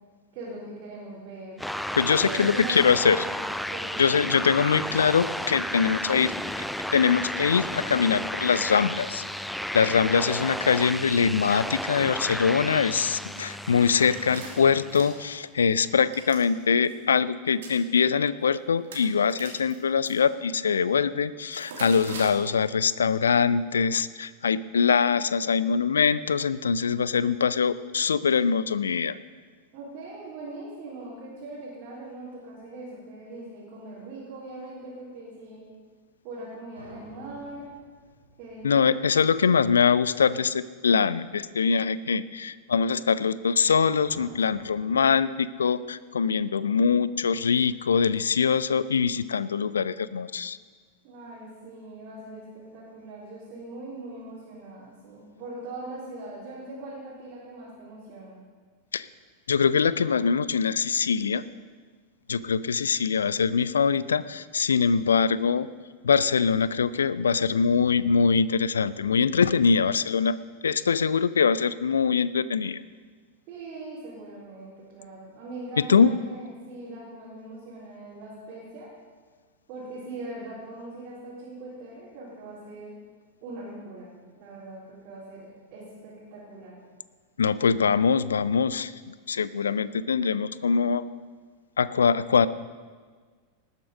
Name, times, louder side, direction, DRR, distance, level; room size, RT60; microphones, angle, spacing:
voice 1, 0.3-1.6 2.1-3.4 3.7-4.3 29.7-35.6 36.2-37.7 38.4-39.3 51.0-58.4 73.5-78.9 79.7-82.9 83.4-84.1 84.4-86.8, right 2 dB, 40° right, -8 dB, 4.0 m, -41 dB
sound 1, 1.6-15.3, equal, ahead, 0.4 m, -33 dB
voice 2, 2.0-3.2 4.0-6.3 6.9-9.2 9.7-29.2 38.6-50.6 58.9-59.1 59.5-61.4 62.3-65.7 66.0-70.4 70.6-72.8 75.9-76.1 87.4-91.0 91.8-92.5, left 6 dB, 70° left, 17 dB, 0.4 m, -23 dB
sound 2, 14.0-15.4 15.7-16.4 16.8-16.9 17.5-17.8 18.4-18.6 18.8-20.1 21.5-22.3, right 4 dB, 60° right, 2.9 m, -41 dB
sound 3, 36.7-39.8 44.0-45.1, right 2 dB, 90° right, 3.1 m, -50 dB
19.0 x 8.1 x 5.3 m, 1.5 s
figure-of-eight pair, 90°, 0 cm